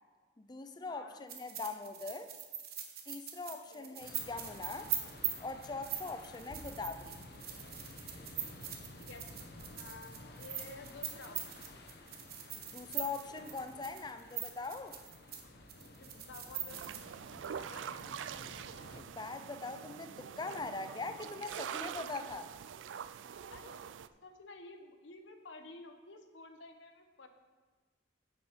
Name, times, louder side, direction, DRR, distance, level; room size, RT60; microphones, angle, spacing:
voice 1, 0.4-2.3 3.1-4.9 5.4-7.2 12.5-15.0 18.9-22.5, left 3 dB, 25° left, 9 dB, 0.5 m, -42 dB
voice 2, 0.9-1.2 3.5-4.0 9.0-9.3 9.8-11.7 15.8-16.9 17.4-18.1 23.4-23.9 24.2-27.3, left 3 dB, 85° left, 7 dB, 1.0 m, -52 dB
sound 1, 1.3-15.4 15.7-17.0, right 10 dB, 55° right, 1.1 m, -41 dB
sound 2, 4.0-19.0, left 1 dB, 60° left, 0.9 m, -53 dB
sound 3, 16.7-24.1, right 8 dB, 80° right, 0.3 m, -45 dB
9.4 x 7.6 x 4.5 m, 1.3 s
head